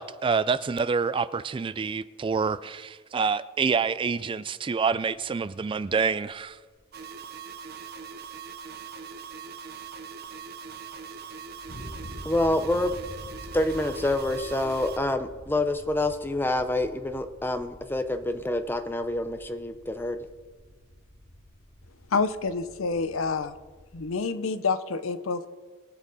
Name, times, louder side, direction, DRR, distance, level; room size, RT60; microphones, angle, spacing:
voice 1, 0.0-6.6, right 5 dB, 25° right, 0.3 m, -27 dB
sound 1, 5.2-24.1, equal, 35° left, 2.7 m, -47 dB
sound 2, 6.9-15.0, right 6 dB, 50° right, 0.8 m, -41 dB
voice 2, 12.2-13.0 13.5-20.2, left 1 dB, 10° left, 0.7 m, -27 dB
voice 3, 22.1-23.5 23.9-25.5, left 4 dB, 75° left, 0.7 m, -28 dB
22.5 x 7.5 x 4.1 m
head